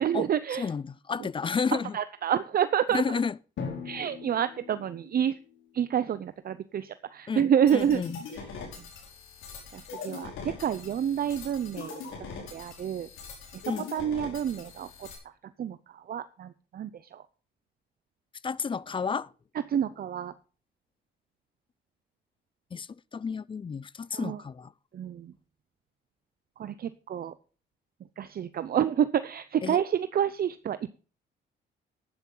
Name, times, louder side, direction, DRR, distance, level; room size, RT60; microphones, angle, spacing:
voice 1, 0.0-0.7 1.9-3.2 3.8-5.3 5.7-8.0 8.3-8.4 9.7-12.0 12.5-13.1 13.9-15.1 15.6-17.2 19.7-20.3 24.1-24.4 24.9-25.3 26.6-27.3 28.2-30.9, right 9 dB, 50° right, 0.6 m, -28 dB
voice 2, 0.6-2.0 2.9-3.3 7.3-8.2 13.7-13.9 18.4-19.3 22.7-24.7 29.6-29.8, left 5 dB, 25° left, 0.4 m, -31 dB
Drum, 3.6-6.1, left 5 dB, 70° left, 3.4 m, -41 dB
sound 1, 7.7-15.2, left 5 dB, 85° left, 4.8 m, -42 dB
11.0 x 10.5 x 3.9 m
cardioid pair, 90°, 20 cm